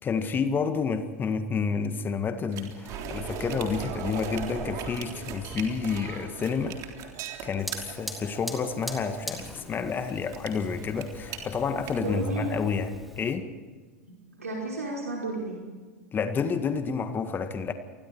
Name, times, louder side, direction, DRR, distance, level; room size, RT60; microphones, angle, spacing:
voice 1, 0.0-6.8 7.4-13.5 16.1-17.7, left 5 dB, 25° left, 9 dB, 1.8 m, -29 dB
sound 1, 2.5-12.6, right 6 dB, 45° right, 3.6 m, -38 dB
Fire, 7.6-13.4, equal, ahead, 3.5 m, -42 dB
voice 2, 11.9-12.5 14.0-15.6, right 2 dB, 80° right, -2 dB, 5.1 m, -33 dB
28.5 x 21.0 x 4.6 m, 1.4 s
figure-of-eight pair, 85°, 8 cm